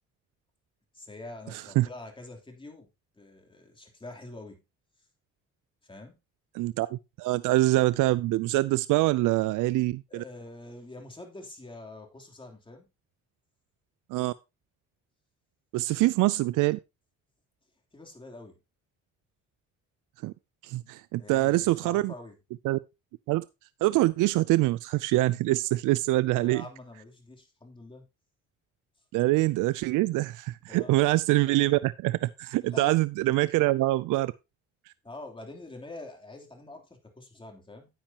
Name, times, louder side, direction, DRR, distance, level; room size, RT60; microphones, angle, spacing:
voice 1, 0.9-2.9 3.1-4.6 5.8-6.2 10.1-12.9 17.9-18.6 21.2-22.3 26.4-28.1 30.7-31.0 32.6-33.0 35.0-37.9, left 2 dB, 15° left, 3.2 m, -45 dB
voice 2, 1.5-1.9 6.5-10.2 14.1-14.3 15.7-16.8 20.2-20.3 20.6-22.1 22.6-22.8 23.3-23.4 23.8-26.6 29.1-34.3, right 18 dB, 90° right, 0.5 m, -25 dB
10.0 x 8.8 x 2.9 m
cardioid pair, 90°, 30 cm